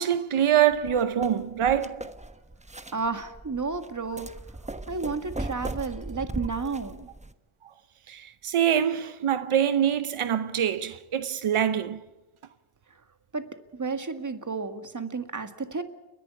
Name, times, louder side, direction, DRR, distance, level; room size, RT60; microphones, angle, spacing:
voice 1, 0.0-2.1 7.6-7.7 8.1-12.0, right 9 dB, 85° right, 0.8 m, -25 dB
sound 1, 0.7-7.3, right 1 dB, 15° right, 1.1 m, -38 dB
voice 2, 2.9-4.3 4.9-7.1 13.3-13.5 13.7-15.8, right 4 dB, 35° right, 1.9 m, -32 dB
30.0 x 11.0 x 8.4 m
cardioid pair, 55°, 49 cm